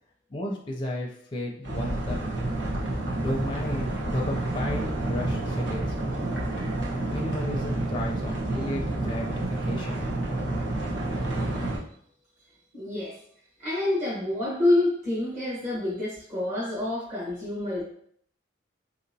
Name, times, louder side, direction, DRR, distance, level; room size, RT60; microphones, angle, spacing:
voice 1, 0.3-2.2 3.1-5.8 7.1-10.2, left 1 dB, 25° left, -1 dB, 0.5 m, -33 dB
sound 1, 1.6-11.8, right 1 dB, 60° right, 1.0 m, -29 dB
voice 2, 12.7-13.2 13.6-17.8, left 2 dB, 35° right, -8 dB, 1.1 m, -27 dB
4.0 x 2.8 x 2.7 m, 0.63 s
head